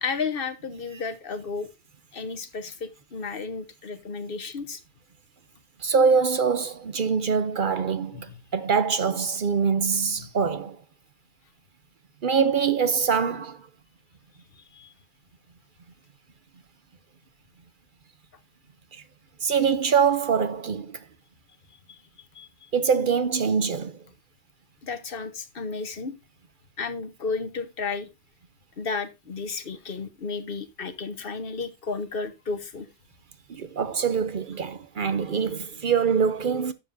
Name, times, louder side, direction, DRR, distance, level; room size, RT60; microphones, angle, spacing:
voice 1, 0.0-1.7 2.1-4.8 8.1-8.4 14.5-14.9 21.9-22.0 22.3-22.5 24.8-26.1 26.8-28.1 28.8-32.9, left 4 dB, 60° left, 1.2 m, -33 dB
voice 2, 5.8-10.8 12.2-13.7 18.9-19.0 19.4-21.0 22.7-24.0 33.5-36.7, right 6 dB, 55° right, 0.8 m, -24 dB
12.0 x 7.5 x 2.6 m
omnidirectional pair, 1.1 m